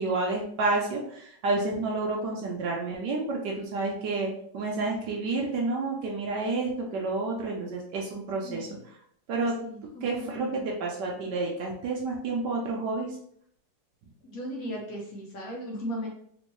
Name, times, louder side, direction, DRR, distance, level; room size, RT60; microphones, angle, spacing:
voice 1, 0.0-8.7 9.3-9.5 10.0-13.1, right 3 dB, 70° right, -1 dB, 1.2 m, -30 dB
voice 2, 8.4-8.8 9.6-10.6 14.2-16.1, equal, 60° left, -1 dB, 1.1 m, -37 dB
3.5 x 3.0 x 3.0 m, 0.66 s
omnidirectional pair, 2.1 m